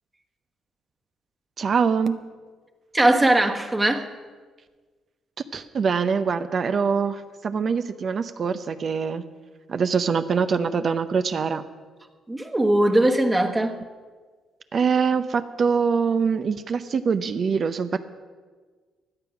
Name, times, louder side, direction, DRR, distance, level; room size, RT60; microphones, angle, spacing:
voice 1, 1.6-2.2 5.5-9.2 9.7-11.6 14.7-18.0, right 5 dB, 50° right, 10 dB, 0.7 m, -24 dB
voice 2, 2.9-4.1 12.3-13.8, right 1 dB, 20° right, 4 dB, 1.4 m, -20 dB
16.5 x 10.5 x 6.0 m, 1.4 s
cardioid pair, 85°, 0 cm